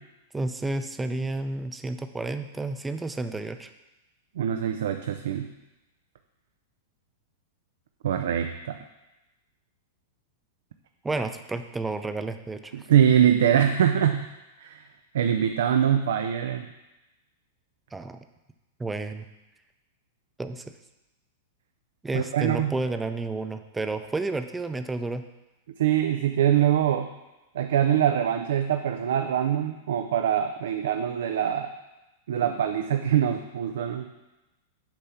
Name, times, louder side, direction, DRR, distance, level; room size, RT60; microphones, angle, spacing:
voice 1, 0.3-3.7 11.0-12.8 17.9-18.2 18.8-19.3 20.4-20.6 22.0-25.2, right 2 dB, 10° right, 9 dB, 0.5 m, -31 dB
voice 2, 4.4-5.5 8.0-8.8 12.7-14.3 14.6-14.8 15.1-16.7 22.1-22.7 25.8-27.1 27.5-31.7 32.3-34.1, right 9 dB, 75° right, 7 dB, 0.4 m, -23 dB
8.7 x 3.4 x 5.7 m, 1.0 s
hypercardioid pair, 115°, 0 cm